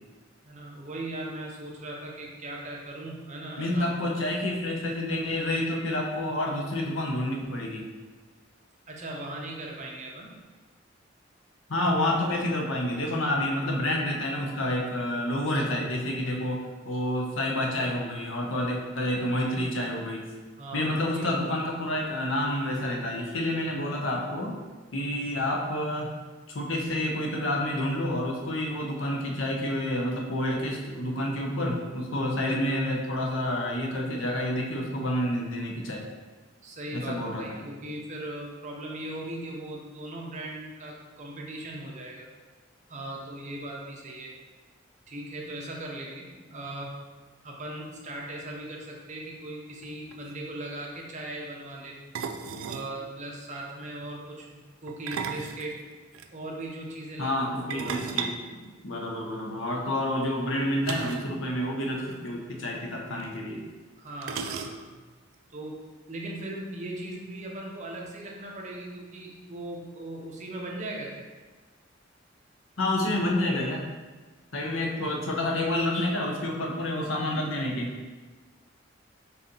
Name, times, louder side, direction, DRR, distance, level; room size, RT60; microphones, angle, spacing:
voice 1, 0.4-3.9 8.9-10.3 20.6-21.3 36.6-42.3 42.9-44.3 45.1-47.0 47.4-52.0 52.7-55.8 56.3-57.3 57.7-58.0 58.4-58.7 64.0-64.9 65.5-65.8 66.1-71.2, right 1 dB, 40° right, -1 dB, 0.7 m, -38 dB
voice 2, 3.6-7.9 11.7-20.3 20.7-24.6 24.9-26.1 26.5-36.0 36.9-37.6 57.2-58.3 58.8-63.6 72.8-73.9 74.5-77.9, left 1 dB, 85° left, 0 dB, 0.7 m, -29 dB
sound 1, 49.8-49.9 50.1-50.3 52.1-52.9 54.9-56.3 57.7-59.4 60.8-61.4 61.6-61.7 62.0-62.2 63.2-63.3 64.2-65.1, right 6 dB, 85° right, 0.3 m, -35 dB
4.1 x 2.7 x 3.7 m, 1.3 s
head